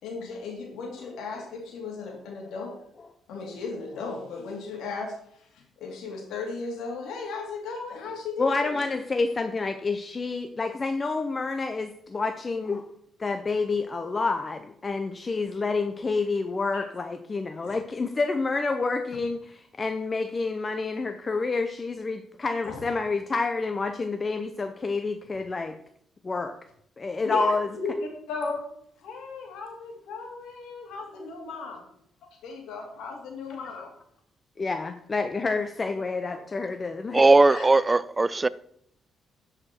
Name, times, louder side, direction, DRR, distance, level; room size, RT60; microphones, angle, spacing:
voice 1, 0.0-2.8 3.3-9.0 16.7-16.8 17.6-17.7 22.6-22.8 27.2-28.6 29.0-31.8 32.4-33.9 37.5-37.7, left 4 dB, 80° left, 2.6 m, -36 dB
voice 2, 8.4-12.9 13.2-25.7 26.2-26.6 27.0-27.7 34.6-37.3, left 3 dB, 30° left, 0.6 m, -28 dB
voice 3, 37.1-38.5, right 2 dB, 20° right, 0.4 m, -18 dB
12.5 x 5.0 x 4.4 m
cardioid pair, 90°, 0 cm